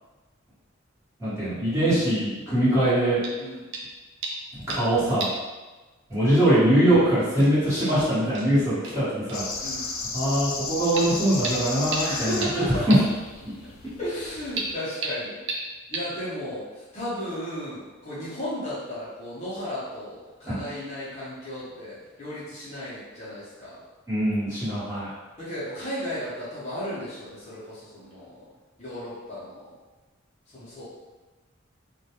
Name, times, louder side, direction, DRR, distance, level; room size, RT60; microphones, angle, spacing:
voice 1, 1.2-3.2 4.7-5.3 6.1-9.4 10.1-13.0 20.5-20.6 24.1-25.1, right 1 dB, 15° right, -13 dB, 1.0 m, -22 dB
sound 1, 3.2-3.4 3.7-3.9 4.2-4.9 5.2-5.5 5.7-5.8 6.9-7.0 7.4-7.5 7.9-8.0 8.3-8.5 8.8-9.0 9.3-9.4 11.0-11.1 11.4-11.5 11.9-12.0 12.4-12.5 12.9-13.0 14.6-14.7 15.0-15.1 15.5-15.6 15.9-16.0, right 3 dB, 60° right, 0.4 m, -31 dB
sound 2, 9.3-14.7, left 3 dB, 80° left, 0.4 m, -34 dB
voice 2, 9.6-9.9 12.0-12.9 14.0-15.4 15.9-23.8 25.4-28.5 28.8-29.8 30.5-30.8, equal, 35° left, -10 dB, 0.6 m, -35 dB
2.2 x 2.2 x 2.8 m, 1.2 s
head